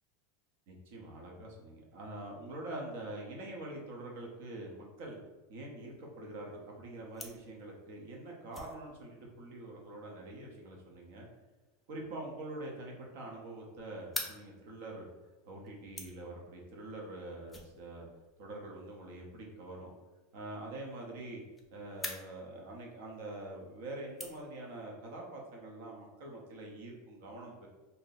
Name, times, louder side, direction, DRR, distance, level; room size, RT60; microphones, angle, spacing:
voice 1, 0.7-5.2 5.5-11.3 11.9-15.1 15.4-18.1 18.4-19.9 20.3-21.4 21.7-27.7, right 2 dB, 55° right, -1 dB, 0.7 m, -45 dB
sound 1, 5.8-24.9, left 2 dB, 5° left, 0.3 m, -50 dB
2.6 x 2.0 x 3.9 m, 1.2 s
supercardioid pair, 170°, 0 cm